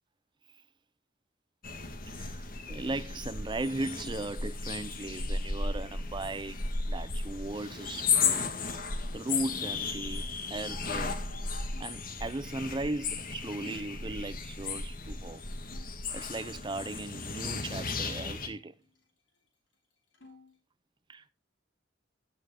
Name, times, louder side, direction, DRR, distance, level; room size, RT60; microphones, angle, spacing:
sound 1, 1.6-18.5, left 4 dB, 50° left, 1.8 m, -34 dB
voice 1, 2.1-6.6 6.8-8.4 9.1-11.2 11.8-15.4 16.1-18.7 21.1-21.3, right 2 dB, 25° right, 0.5 m, -37 dB
sound 2, 7.7-7.9 8.2-9.2 9.8-12.6 13.1-13.2 13.5-16.0 16.3-18.0 18.4-19.5 19.7-20.6, left 3 dB, 85° left, 5.1 m, -61 dB
16.5 x 6.9 x 3.7 m
head